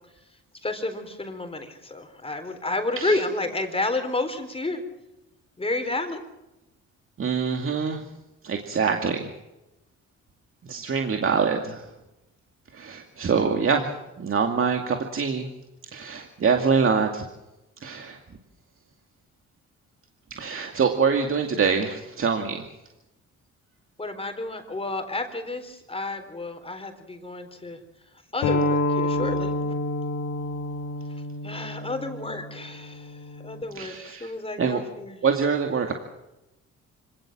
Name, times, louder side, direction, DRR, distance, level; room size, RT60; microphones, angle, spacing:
voice 1, 0.6-4.8 5.6-6.2 24.0-27.8 28.3-29.8 31.4-35.2, left 2 dB, 20° left, 6 dB, 4.1 m, -31 dB
voice 2, 7.2-8.0 8.4-9.3 10.7-11.8 12.7-13.9 14.2-15.5 15.9-17.2 17.8-18.2 20.4-22.6 33.8-34.3 34.6-34.8 35.2-35.9, right 5 dB, 45° right, 4 dB, 2.4 m, -24 dB
sound 1, 28.4-33.6, left 2 dB, 80° left, 3.2 m, -28 dB
25.5 x 18.0 x 7.5 m, 0.94 s
cardioid pair, 90°, 30 cm